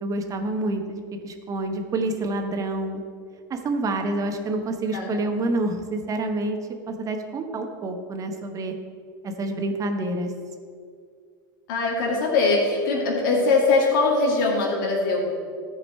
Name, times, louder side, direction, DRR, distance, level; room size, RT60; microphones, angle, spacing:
voice 1, 0.0-3.0 3.5-6.6 6.9-8.7 9.2-10.3, right 2 dB, 30° right, 5 dB, 1.1 m, -28 dB
voice 2, 11.7-15.2, left 3 dB, 70° left, -2 dB, 2.4 m, -21 dB
14.0 x 5.2 x 4.4 m, 2.2 s
hypercardioid pair, 100°, 11 cm